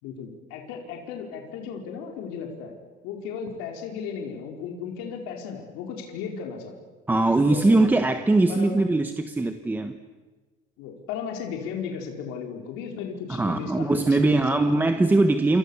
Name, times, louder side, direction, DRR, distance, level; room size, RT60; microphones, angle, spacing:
voice 1, 0.0-2.7 3.0-6.8 7.4-7.8 8.5-8.7 10.8-14.8, left 6 dB, 80° left, 2 dB, 4.7 m, -35 dB
voice 2, 7.1-10.0 13.3-15.6, right 2 dB, 10° right, 7 dB, 1.2 m, -21 dB
28.5 x 27.5 x 7.2 m, 1.3 s
cardioid pair, 155°, 21 cm